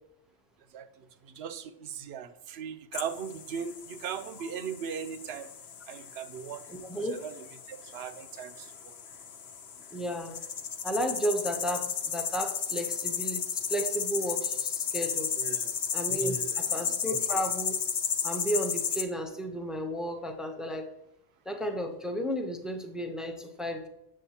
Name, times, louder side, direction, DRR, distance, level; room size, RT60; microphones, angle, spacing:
voice 1, 1.2-5.5 5.9-8.7 15.4-15.7 16.3-16.4, right 7 dB, 70° right, 11 dB, 0.8 m, -39 dB
sound 1, 2.9-19.0, left 7 dB, 70° left, 0.9 m, -34 dB
voice 2, 6.7-7.2 9.9-10.4 10.8-15.3 15.9-17.8 18.2-20.9 21.5-23.9, equal, ahead, 4 dB, 0.5 m, -33 dB
7.7 x 7.4 x 2.8 m, 0.82 s
omnidirectional pair, 1.1 m